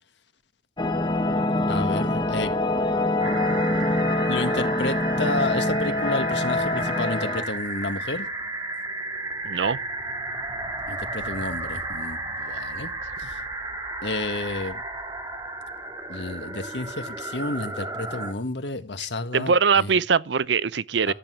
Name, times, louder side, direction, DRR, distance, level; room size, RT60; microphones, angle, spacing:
sound 1, 0.8-7.4, left 2 dB, 25° left, 1.2 m, -25 dB
voice 1, 1.7-2.5 4.3-8.3 10.9-12.9 13.2-13.4 14.0-14.8 16.1-19.9 21.1-21.2, left 2 dB, 85° left, 1.6 m, -30 dB
sound 2, 3.2-18.3, right 2 dB, 20° right, 2.4 m, -33 dB
voice 2, 9.4-9.8 19.3-21.1, right 5 dB, 90° right, 0.6 m, -22 dB
13.5 x 8.1 x 9.0 m
head